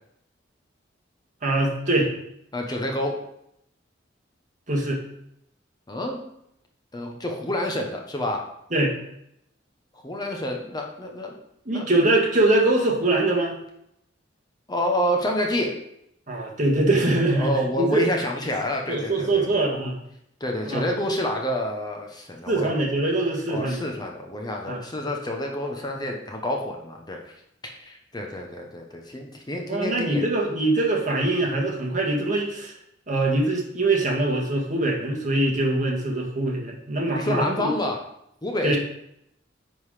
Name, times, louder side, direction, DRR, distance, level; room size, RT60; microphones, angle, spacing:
voice 1, 1.4-2.1 4.7-5.0 8.7-8.9 11.7-13.6 16.3-18.1 18.9-19.9 20.7-20.9 22.5-23.8 24.7-24.8 29.7-32.7 33.1-37.7 38.6-38.8, right 2 dB, 45° right, -2 dB, 1.9 m, -23 dB
voice 2, 2.5-3.2 5.9-6.2 6.9-8.4 10.0-11.3 11.7-11.8 14.7-15.8 17.4-19.6 20.4-22.7 23.5-27.3 27.6-30.2 37.1-38.0 38.4-38.8, left 1 dB, 20° left, 1 dB, 1.0 m, -28 dB
9.9 x 4.0 x 4.9 m, 0.76 s
head